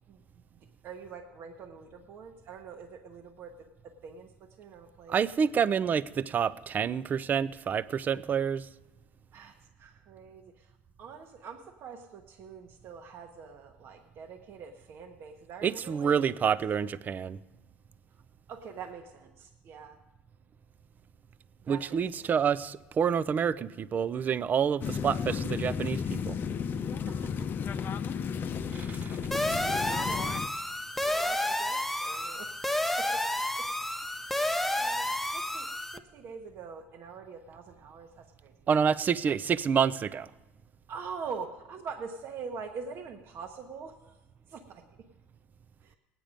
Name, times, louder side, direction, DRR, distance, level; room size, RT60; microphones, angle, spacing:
voice 1, 0.5-5.2 9.3-16.6 18.1-18.2 18.5-20.0 21.6-22.3 26.7-27.5 28.9-29.2 30.1-30.4 30.9-33.2 33.6-33.7 34.2-34.4 34.7-38.5 40.9-44.2 44.5-44.8 45.8-46.0, right 5 dB, 55° right, 4 dB, 1.1 m, -45 dB
voice 2, 5.1-8.7 15.6-17.4 21.7-26.4 28.7-29.2 38.7-40.3, right 7 dB, 35° right, 17 dB, 0.5 m, -28 dB
sound 1, 24.8-30.5, left 6 dB, 40° left, 0.6 m, -33 dB
sound 2, 29.3-36.0, left 1 dB, 5° left, 0.7 m, -30 dB
18.0 x 9.1 x 5.1 m, 1.1 s
supercardioid pair, 95°, 5 cm